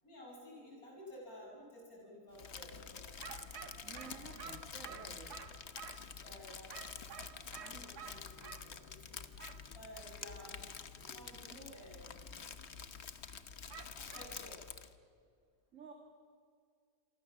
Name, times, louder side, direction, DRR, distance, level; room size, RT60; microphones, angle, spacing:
voice 1, 0.0-3.1 6.2-6.8 7.1-9.2 9.7-10.7 11.0-12.4 12.8-12.9 13.9-14.6, equal, 65° left, -2 dB, 8.5 m, -54 dB
Crumpling crinkling, 2.3-14.9, left 6 dB, 45° left, 1.3 m, -48 dB
sound 1, 3.2-6.1 6.7-8.7 9.4-9.6 13.7-14.4, right 7 dB, 85° right, 1.9 m, -50 dB
voice 2, 3.8-5.3 15.7-15.9, right 4 dB, 50° right, 2 dB, 2.5 m, -52 dB
27.5 x 24.0 x 7.3 m, 2.3 s
omnidirectional pair, 1.7 m